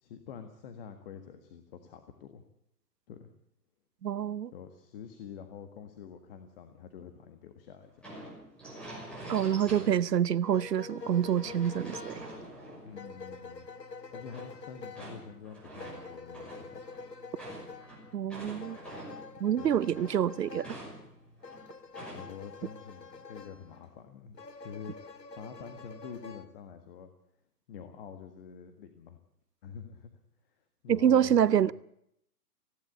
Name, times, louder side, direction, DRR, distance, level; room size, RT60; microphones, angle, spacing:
voice 1, 0.0-2.4 3.1-3.3 4.5-8.2 12.8-13.7 14.1-16.8 19.5-19.8 22.1-25.1 25.4-27.1 27.7-29.2 29.6-30.2 30.5-31.7, left 7 dB, 35° left, 1.7 m, -47 dB
voice 2, 4.0-4.5 9.3-12.1 18.1-18.8 19.4-20.7 30.9-31.7, right 9 dB, 80° right, 0.8 m, -26 dB
sound 1, 8.0-10.3 10.7-13.3 14.3-19.4 19.7-22.5 22.8-22.9 23.4-23.8, right 1 dB, ahead, 6.1 m, -46 dB
sound 2, 10.4-23.9 24.4-26.4, left 4 dB, 90° left, 2.1 m, -47 dB
20.0 x 16.5 x 8.3 m
hypercardioid pair, 145°, 48 cm